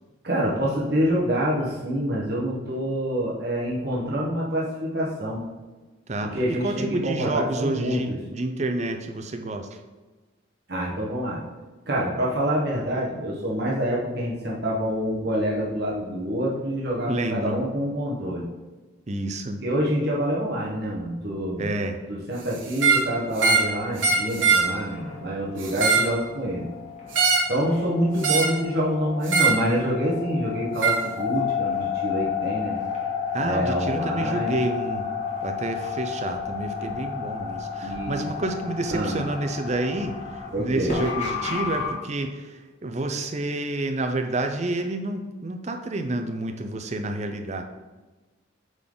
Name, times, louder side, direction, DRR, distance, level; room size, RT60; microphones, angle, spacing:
voice 1, 0.2-5.4 6.3-8.0 10.7-11.4 11.9-18.4 19.6-21.7 22.1-26.6 27.5-32.8 33.4-34.5 37.8-38.2 38.9-39.2 40.5-40.9, equal, 55° right, -4 dB, 1.2 m, -26 dB
voice 2, 6.1-9.8 17.1-17.6 19.1-19.6 21.6-22.0 33.3-35.1 35.4-47.6, right 2 dB, 35° right, 5 dB, 0.5 m, -29 dB
sound 1, 22.7-23.1 23.4-23.7 24.0-24.7 25.6-26.1 27.1-27.5 28.2-28.6 29.3-29.6 30.8-31.0, right 4 dB, 70° right, 1.1 m, -21 dB
sound 2, 23.9-41.9, left 6 dB, 35° left, 1.5 m, -32 dB
8.0 x 3.9 x 3.8 m, 1.2 s
head